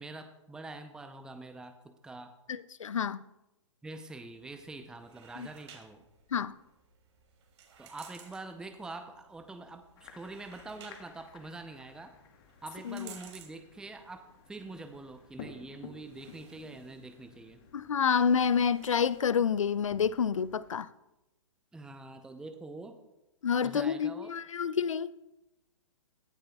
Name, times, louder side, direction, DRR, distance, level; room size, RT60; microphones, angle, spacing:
voice 1, 0.0-2.3 3.8-6.0 7.8-12.2 12.6-17.6 21.7-23.0 23.6-24.3, right 2 dB, 5° right, 0.6 m, -45 dB
voice 2, 2.8-3.2 6.3-6.5 12.9-13.1 17.7-20.9 23.4-25.1, left 7 dB, 80° left, 0.5 m, -28 dB
sound 1, 4.3-19.3, right 6 dB, 60° right, 2.9 m, -58 dB
sound 2, 10.0-20.7, left 7 dB, 45° left, 1.4 m, -54 dB
16.5 x 10.5 x 2.3 m
figure-of-eight pair, 120°, 16 cm